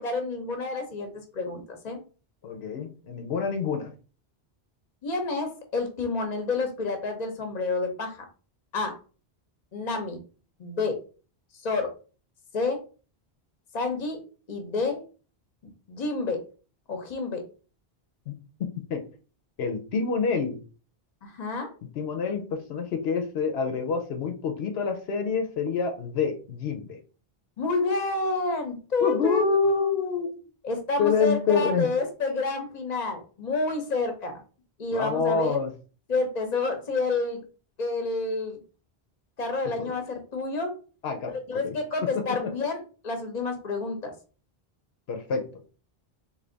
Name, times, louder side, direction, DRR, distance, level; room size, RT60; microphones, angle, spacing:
voice 1, 0.0-2.0 5.0-8.2 8.7-9.0 9.7-10.2 10.6-10.9 11.6-11.9 12.5-12.8 13.7-14.2 14.5-15.0 15.9-16.4 16.9-17.4 21.2-21.7 27.6-30.1 30.6-34.4 34.8-35.6 36.1-37.4 37.8-38.6 39.4-40.7 41.5-44.1, left 3 dB, 45° left, 5 dB, 0.9 m, -29 dB
voice 2, 2.4-3.9 18.3-18.4 18.6-19.0 19.6-20.6 22.0-27.0 29.0-30.3 31.0-31.9 34.9-35.7 39.8-39.9 41.0-41.3 41.6-41.7 45.1-45.4, left 5 dB, 80° left, 5 dB, 0.9 m, -27 dB
3.4 x 2.8 x 3.9 m, 0.37 s
omnidirectional pair, 1.0 m